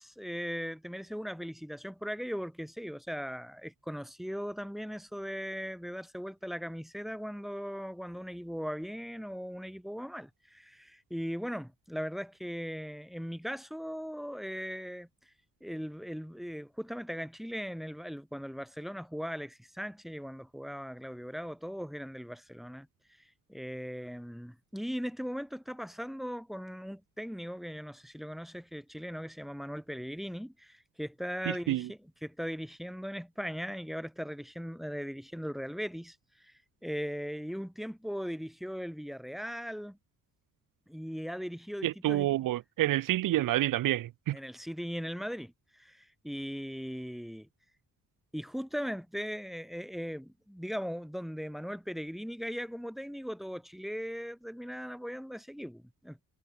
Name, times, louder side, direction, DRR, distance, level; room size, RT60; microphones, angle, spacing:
voice 1, 0.0-15.3 15.6-22.9 23.2-36.5 36.8-40.0 40.9-42.3 44.3-47.5 48.3-56.2, equal, ahead, 3.8 m, -39 dB
voice 2, 31.5-31.9 41.8-44.4, right 14 dB, 75° right, 0.9 m, -28 dB
cardioid pair, 120°, 33 cm